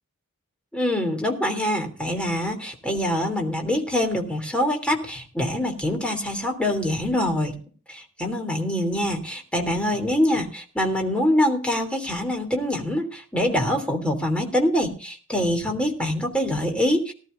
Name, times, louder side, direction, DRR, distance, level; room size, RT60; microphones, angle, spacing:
voice 1, 0.7-7.5 7.9-17.1, left 1 dB, 5° left, 3 dB, 3.2 m, -24 dB
19.5 x 12.0 x 2.7 m, 0.40 s
head